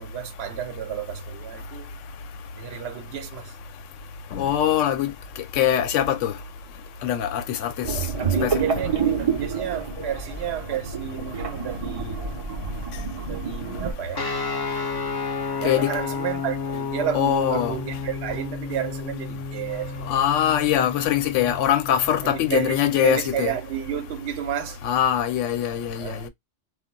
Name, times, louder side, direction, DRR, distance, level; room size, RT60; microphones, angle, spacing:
voice 1, 0.0-1.9 2.5-3.6 8.2-12.4 13.2-14.3 15.6-20.1 22.2-24.8 26.0-26.3, right 10 dB, 65° right, 0.8 m, -31 dB
voice 2, 4.3-5.1 5.6-6.3 7.0-7.9 8.4-8.7 15.6-15.9 17.1-17.8 20.1-23.5 24.8-26.3, left 10 dB, 80° left, 0.9 m, -22 dB
sound 1, 7.8-13.9, right 6 dB, 45° right, 0.5 m, -28 dB
sound 2, 14.1-23.1, left 5 dB, 35° left, 0.3 m, -32 dB
2.4 x 2.2 x 3.7 m
omnidirectional pair, 1.3 m